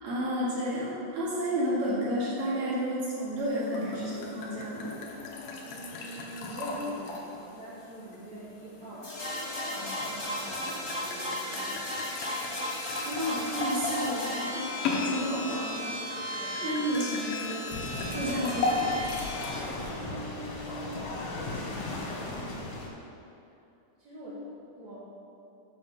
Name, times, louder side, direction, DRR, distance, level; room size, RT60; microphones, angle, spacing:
voice 1, 0.0-5.0 13.1-14.7 15.0-15.6 16.6-17.5 18.1-19.0, equal, 60° right, -7 dB, 2.0 m, -31 dB
sound 1, 3.4-19.9, left 3 dB, 85° left, 2.1 m, -37 dB
voice 2, 5.6-9.4 9.7-11.9 12.4-12.8 15.1-15.5 16.3-17.3 19.8-21.4 22.0-25.0, equal, 80° right, -9 dB, 1.6 m, -44 dB
sound 2, 9.0-19.5, left 1 dB, 30° left, 1.3 m, -36 dB
sound 3, 17.7-22.9, left 2 dB, 65° left, 2.0 m, -37 dB
7.1 x 6.4 x 7.0 m, 2.6 s
omnidirectional pair, 5.6 m